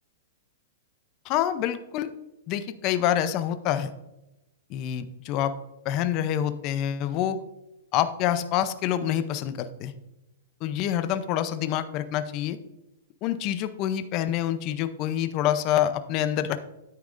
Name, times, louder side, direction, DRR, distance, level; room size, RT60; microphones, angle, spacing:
voice 1, 1.3-2.1 2.5-3.9 4.7-5.5 5.8-7.4 7.9-9.9 10.6-12.6 13.2-16.6, left 11 dB, 35° left, 12 dB, 0.5 m, -26 dB
9.5 x 8.7 x 2.5 m, 0.94 s
hypercardioid pair, 155°, 0 cm